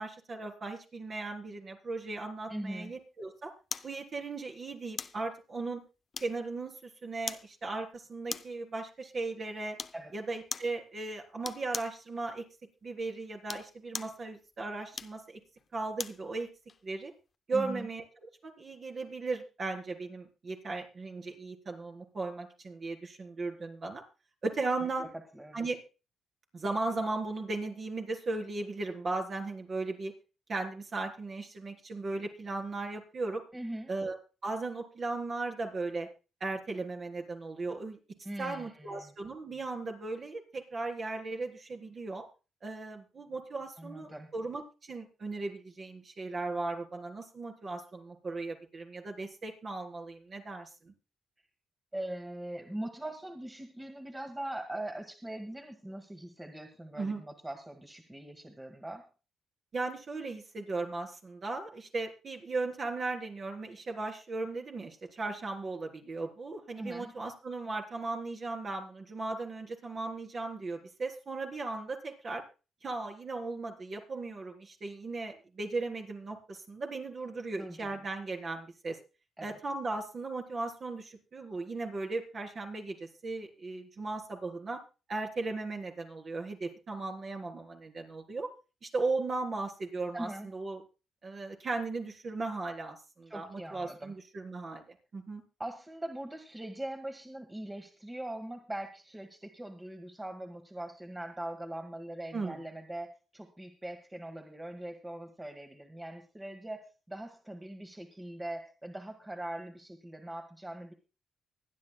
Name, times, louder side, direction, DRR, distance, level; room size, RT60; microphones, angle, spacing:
voice 1, 0.0-3.5 3.8-5.8 6.2-6.7 7.0-9.8 10.1-12.4 12.8-15.4 15.7-16.5 16.8-17.1 17.5-18.0 18.4-24.0 24.4-25.1 25.5-25.8 26.5-30.1 30.5-33.4 33.9-34.2 34.4-36.1 36.4-38.0 38.4-42.2 42.6-50.9 57.0-57.2 59.7-72.4 72.8-79.0 79.4-84.8 85.1-88.5 88.8-90.8 91.2-95.4 102.3-102.6, right 3 dB, 50° right, 2 dB, 3.6 m, -37 dB
voice 2, 2.5-2.9 9.9-10.1 17.5-17.9 24.8-25.1 25.3-25.6 33.5-33.9 38.2-39.1 43.8-44.3 51.9-59.1 66.8-67.1 77.5-78.0 79.4-79.6 90.1-90.5 93.3-94.1 95.6-110.9, right 1 dB, 15° right, 4 dB, 1.6 m, -41 dB
sound 1, 3.7-4.0 5.0-5.2 6.1-6.6 7.3-7.5 8.3-8.6 9.8-10.0 10.5-10.8 11.4-12.0 13.3-14.2 14.9-16.2 16.7-16.8, left 5 dB, 50° left, 0.6 m, -39 dB
24.5 x 9.8 x 2.3 m, 0.31 s
cardioid pair, 65°, 0 cm